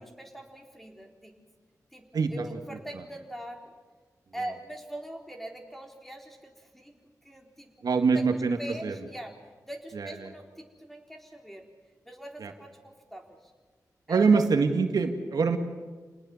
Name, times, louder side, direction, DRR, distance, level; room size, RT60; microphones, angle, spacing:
voice 1, 0.0-1.3 1.9-3.7 4.3-7.7 8.1-8.2 8.6-9.4 9.6-11.7 12.0-13.5 14.1-14.4, right 1 dB, 5° left, 2 dB, 3.9 m, -42 dB
voice 2, 2.1-2.5 7.8-8.9 9.9-10.3 12.4-12.5 14.1-15.6, right 4 dB, 85° right, 6 dB, 1.9 m, -24 dB
27.5 x 19.5 x 7.2 m, 1.4 s
wide cardioid pair, 95°, 6 cm